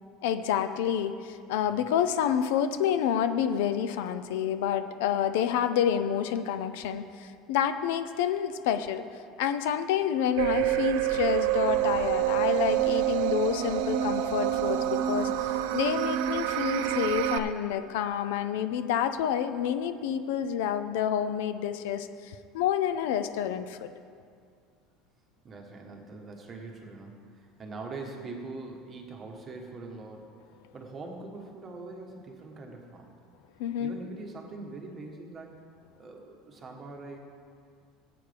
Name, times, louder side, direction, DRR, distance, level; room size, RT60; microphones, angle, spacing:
voice 1, 0.2-9.0 9.4-23.9 33.6-33.9, left 9 dB, 80° left, 10 dB, 0.6 m, -28 dB
sound 1, 10.4-17.4, right 13 dB, 70° right, 0.6 m, -27 dB
voice 2, 25.4-30.3 30.7-33.1 33.8-35.6 36.0-37.2, right 3 dB, 20° right, 1 dB, 1.2 m, -43 dB
17.0 x 8.6 x 3.4 m, 2.2 s
cardioid pair, 170°, 0 cm